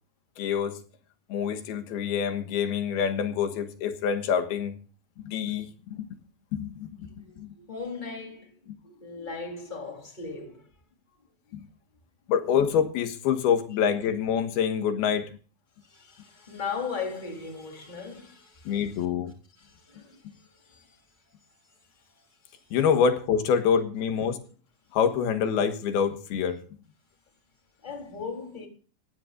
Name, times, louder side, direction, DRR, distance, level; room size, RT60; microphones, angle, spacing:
voice 1, 0.4-0.8 1.3-4.7 5.3-6.1 6.5-7.6 11.5-11.7 12.3-15.4 18.7-19.3 22.7-24.4 24.9-26.6, left 7 dB, 90° left, 3.4 m, -26 dB
voice 2, 7.2-10.7 15.8-19.1 19.6-21.0 21.6-21.7 22.2-22.8 27.8-28.7, left 5 dB, 15° left, 3.4 m, -38 dB
19.5 x 15.5 x 2.6 m
omnidirectional pair, 4.3 m